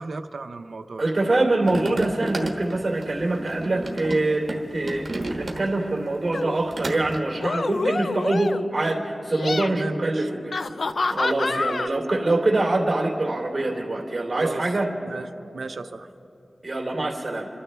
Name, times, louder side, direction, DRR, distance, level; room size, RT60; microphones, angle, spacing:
voice 1, 0.0-1.0 9.7-10.3 11.4-12.0 14.3-14.6 15.1-15.3 15.5-16.1, right 3 dB, 85° right, 8 dB, 0.6 m, -35 dB
voice 2, 1.0-10.5 11.1-14.9 16.6-17.5, right 2 dB, 45° right, -2 dB, 3.1 m, -24 dB
sound 1, 1.6-5.9 6.3-7.2, right 2 dB, 65° right, 1.3 m, -32 dB
sound 2, 6.3-6.6 7.3-8.8 9.2-9.7 10.5-11.9, left 3 dB, 75° left, 0.3 m, -27 dB
28.5 x 12.5 x 3.4 m, 2.8 s
wide cardioid pair, 65°, 0 cm